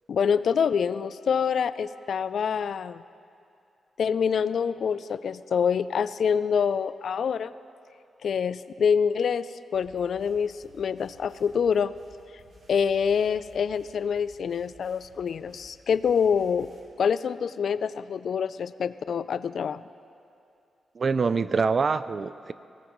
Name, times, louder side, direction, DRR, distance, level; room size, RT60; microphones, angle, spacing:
voice 1, 0.1-3.0 4.0-7.5 8.2-11.9 12.7-16.7 17.0-19.8, left 7 dB, 65° left, 15 dB, 0.3 m, -26 dB
sound 1, 9.7-16.8, right 1 dB, 70° right, 3.5 m, -56 dB
voice 2, 21.0-22.5, right 4 dB, 40° right, 14 dB, 0.4 m, -25 dB
19.5 x 18.5 x 3.1 m, 2.6 s
wide cardioid pair, 145°, 0 cm